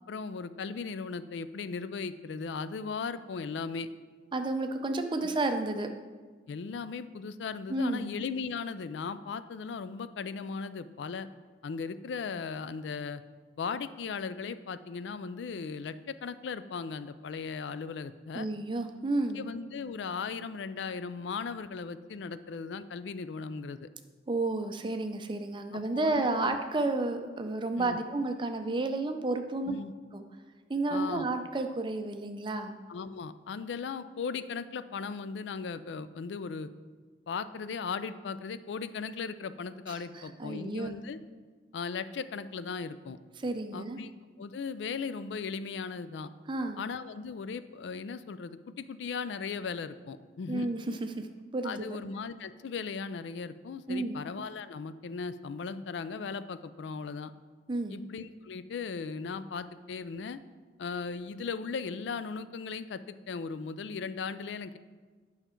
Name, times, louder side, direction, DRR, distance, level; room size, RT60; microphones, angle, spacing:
voice 1, 0.1-3.9 6.5-11.3 11.6-13.2 13.6-18.5 19.4-23.9 25.7-26.6 27.8-28.0 29.7-29.9 30.9-31.3 32.9-36.7 37.3-41.2 41.7-43.2 43.7-44.1 44.4-46.3 46.8-50.7 51.6-57.3 57.9-60.4 60.8-64.8, left 5 dB, 75° left, 13 dB, 0.4 m, -37 dB
voice 2, 4.3-5.9 7.7-8.1 18.3-19.5 24.3-29.7 30.1-30.2 30.7-32.8 40.1-40.9 43.4-44.0 46.5-46.8 50.5-51.3 51.5-52.0 53.9-54.2 57.7-58.0, right 2 dB, 25° right, 6 dB, 0.5 m, -31 dB
9.1 x 5.8 x 4.4 m, 1.4 s
head